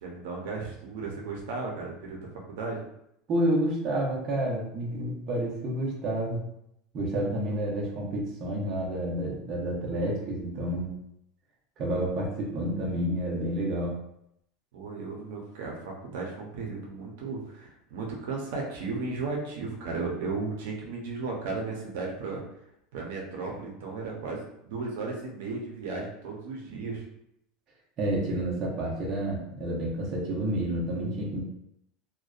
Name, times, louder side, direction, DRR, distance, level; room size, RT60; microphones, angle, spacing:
voice 1, 0.0-2.8 14.7-22.4 22.9-27.0, right 3 dB, 85° right, -1 dB, 0.6 m, -35 dB
voice 2, 3.3-6.4 6.9-10.9 11.8-14.0 28.0-31.4, right 1 dB, 35° right, -4 dB, 0.7 m, -29 dB
2.5 x 2.2 x 2.3 m, 0.76 s
supercardioid pair, 155°, 0 cm